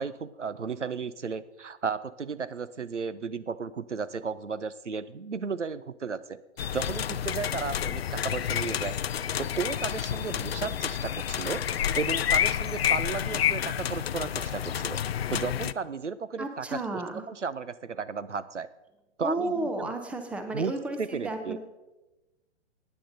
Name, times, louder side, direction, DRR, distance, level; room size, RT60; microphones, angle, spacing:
voice 1, 0.0-6.4 6.7-9.0 9.4-11.6 12.0-15.0 15.3-17.0 17.3-18.7 19.2-19.9 20.5-20.7 21.0-21.6, right 5 dB, 85° right, 15 dB, 0.6 m, -34 dB
sound 1, 6.6-15.7, left 10 dB, 60° left, 0.5 m, -29 dB
voice 2, 16.4-17.2 19.2-21.6, right 2 dB, 5° right, 6 dB, 0.7 m, -32 dB
16.0 x 9.8 x 4.0 m, 1.0 s
figure-of-eight pair, 120°, 35 cm